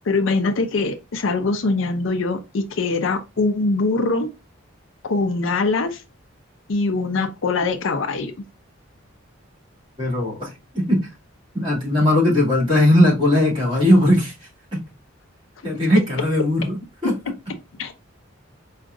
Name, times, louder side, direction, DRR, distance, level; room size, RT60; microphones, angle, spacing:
voice 1, 0.1-4.3 5.0-6.0 6.7-8.3 17.8-17.9, left 3 dB, 65° left, 0.5 m, -22 dB
voice 2, 10.0-10.5 10.7-11.0 11.5-14.3 15.6-17.1, left 1 dB, 25° right, 2.2 m, -18 dB
4.7 x 2.4 x 2.4 m
head